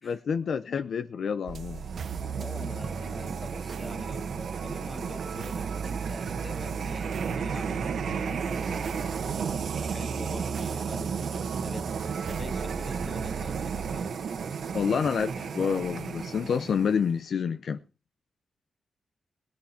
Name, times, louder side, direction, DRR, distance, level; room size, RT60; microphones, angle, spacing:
voice 1, 0.0-1.8 14.7-17.8, left 6 dB, 75° left, 0.7 m, -28 dB
sound 1, 1.5-14.0, right 6 dB, 70° right, 0.7 m, -37 dB
sound 2, 1.7-17.1, right 6 dB, 85° right, 1.5 m, -34 dB
voice 2, 2.3-9.1 9.8-14.1, left 2 dB, 30° left, 1.6 m, -45 dB
19.0 x 9.5 x 4.2 m
wide cardioid pair, 105°, 0 cm